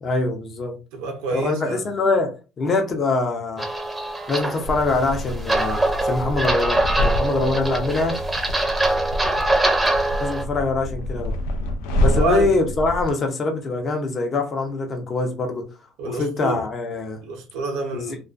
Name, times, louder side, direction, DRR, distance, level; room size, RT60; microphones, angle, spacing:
voice 1, 0.0-0.8 1.3-3.7 4.3-8.2 10.2-11.4 12.0-15.7 16.0-17.2 17.9-18.2, left 3 dB, 40° left, 0.6 m, -24 dB
voice 2, 0.9-1.8 12.0-12.5 16.0-16.6 17.2-18.2, right 3 dB, 85° right, 0.7 m, -27 dB
sound 1, 3.6-10.4, right 2 dB, 10° right, 0.6 m, -23 dB
sound 2, 4.6-13.1, left 1 dB, 90° left, 0.4 m, -27 dB
2.4 x 2.3 x 2.4 m
supercardioid pair, 105°, 0 cm